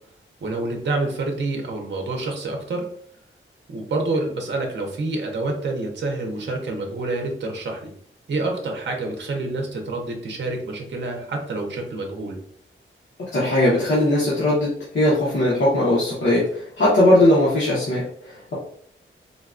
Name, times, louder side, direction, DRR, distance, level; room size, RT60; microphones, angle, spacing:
voice 1, 0.4-2.8 3.7-7.9 8.3-12.4, right 2 dB, 55° right, 1 dB, 0.6 m, -27 dB
voice 2, 13.3-18.5, left 1 dB, 60° left, -7 dB, 0.9 m, -19 dB
3.8 x 2.2 x 2.4 m, 0.62 s
wide cardioid pair, 135°, 21 cm